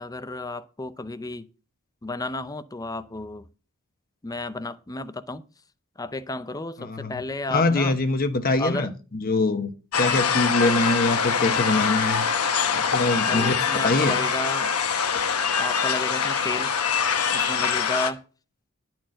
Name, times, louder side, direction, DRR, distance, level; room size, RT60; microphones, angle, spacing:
voice 1, 0.0-1.5 2.0-3.4 4.2-5.4 6.0-7.9 8.6-8.9 10.4-10.5 13.3-14.7 15.6-16.7 17.3-18.2, left 2 dB, 15° left, 0.6 m, -32 dB
voice 2, 6.8-7.2 7.5-9.7 9.9-12.2 12.7-14.2, left 2 dB, 40° left, 1.0 m, -24 dB
sound 1, 9.9-18.1, left 6 dB, 90° left, 1.0 m, -24 dB
11.0 x 4.4 x 7.5 m
head